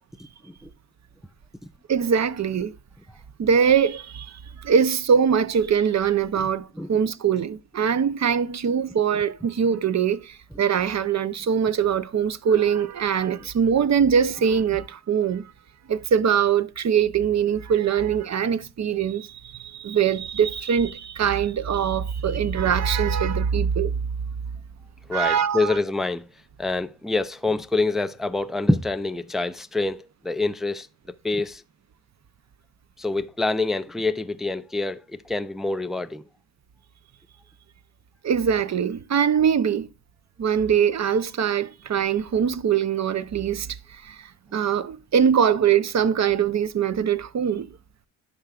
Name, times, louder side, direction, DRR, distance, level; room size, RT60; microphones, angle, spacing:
voice 1, 1.9-2.8 3.4-15.4 15.9-23.9 25.1-25.8 38.2-39.9 40.4-47.7, right 7 dB, 35° right, 0.7 m, -22 dB
voice 2, 25.1-26.3 26.6-30.9 31.2-31.6 33.0-36.2, left 2 dB, ahead, 0.3 m, -26 dB
11.0 x 5.6 x 2.4 m
supercardioid pair, 60°, 47 cm